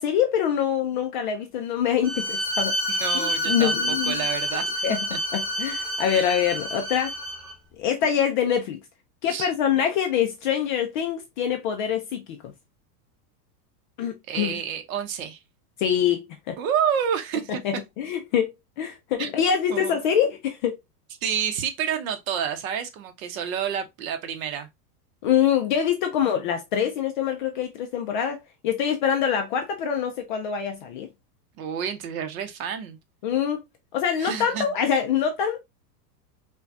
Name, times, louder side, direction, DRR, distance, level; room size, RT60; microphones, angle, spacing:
voice 1, 0.0-2.7 3.1-4.2 4.8-5.1 5.3-7.1 7.8-8.8 9.2-12.4 14.0-14.6 15.8-16.6 17.6-20.8 25.2-31.1 33.2-33.6 33.9-35.6, left 8 dB, 35° left, 0.4 m, -25 dB
Bowed string instrument, 2.0-7.5, equal, 5° right, 1.0 m, -28 dB
voice 2, 2.9-4.8 5.1-5.2 6.1-6.3 9.3-9.5 14.3-15.4 16.6-17.6 19.2-20.0 21.2-24.7 31.6-33.0 34.2-34.7, right 8 dB, 55° right, 1.0 m, -29 dB
5.5 x 2.3 x 2.6 m
supercardioid pair, 150°, 49 cm